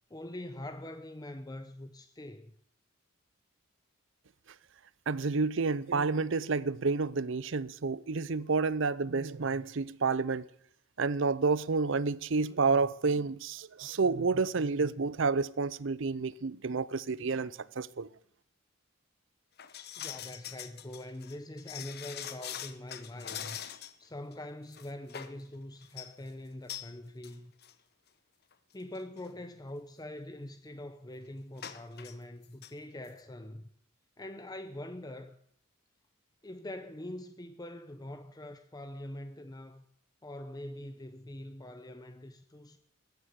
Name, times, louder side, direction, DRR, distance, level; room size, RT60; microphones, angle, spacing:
voice 1, 0.1-2.5 20.0-23.6 24.0-27.5 28.7-33.7 34.2-35.4 36.4-39.8 40.2-42.8, left 1 dB, 20° left, 0.7 m, -44 dB
voice 2, 5.1-10.4 11.0-18.1, right 4 dB, 65° right, 0.6 m, -30 dB
sound 1, 19.6-24.0 24.3-24.4 24.7-25.4 25.8-26.1 26.7-26.9 27.2-27.3 27.6-27.7 28.5-28.6 28.9-29.2 31.6-32.1 32.4-32.7 33.0-33.1, left 10 dB, 50° left, 1.1 m, -43 dB
14.5 x 9.7 x 9.4 m
head